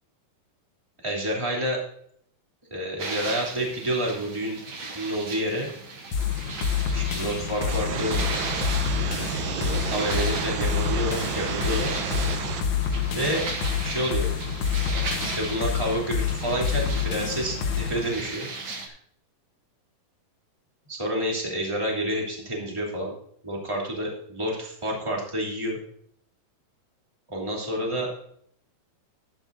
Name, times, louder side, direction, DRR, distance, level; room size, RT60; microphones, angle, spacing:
voice 1, 1.0-1.8 2.7-4.6 4.9-5.7 6.9-8.2 9.5-11.9 13.1-13.4 13.8-14.3 15.2-18.5 20.9-23.1 23.4-25.8 27.3-28.1, right 1 dB, 10° right, -2 dB, 2.4 m, -29 dB
sound 1, 3.0-18.9, right 3 dB, 55° right, 1.4 m, -37 dB
sound 2, 6.1-18.1, left 7 dB, 65° left, 1.7 m, -28 dB
sound 3, 7.6-12.6, right 8 dB, 75° right, 2.3 m, -31 dB
11.5 x 11.0 x 2.7 m, 0.64 s
omnidirectional pair, 4.6 m